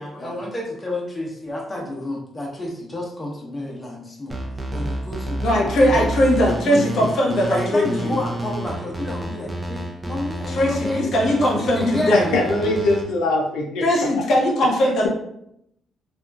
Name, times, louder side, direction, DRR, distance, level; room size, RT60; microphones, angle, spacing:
voice 1, 0.0-4.3 4.7-6.1 6.5-7.1 7.5-11.1 11.4-12.4 12.6-12.7, left 1 dB, 20° left, -2 dB, 0.7 m, -30 dB
sound 1, 4.3-13.0, right 1 dB, 25° right, 0.5 m, -30 dB
voice 2, 5.4-8.1 10.5-12.4 13.8-15.1, left 1 dB, 65° left, -2 dB, 0.8 m, -20 dB
voice 3, 12.1-14.1, left 2 dB, 90° left, -1 dB, 0.3 m, -22 dB
2.8 x 2.3 x 2.3 m, 0.76 s
cardioid pair, 90°, 0 cm